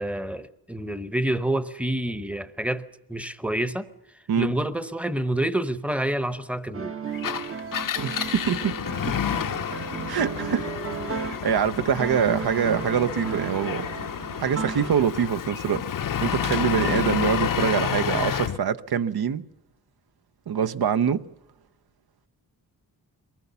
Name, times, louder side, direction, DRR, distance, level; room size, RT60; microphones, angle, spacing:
voice 1, 0.0-7.0 16.8-17.0, right 1 dB, 5° right, 0.8 m, -28 dB
sound 1, 6.7-11.6 12.0-15.3, right 6 dB, 35° right, 0.8 m, -34 dB
Engine, 7.1-18.6, left 8 dB, 55° left, 0.7 m, -30 dB
voice 2, 8.0-8.8 9.0-9.2 10.1-10.7 11.0-13.9 14.4-19.4 20.5-21.2, right 8 dB, 70° right, 0.8 m, -25 dB
23.5 x 19.5 x 6.9 m
wide cardioid pair, 160°, 39 cm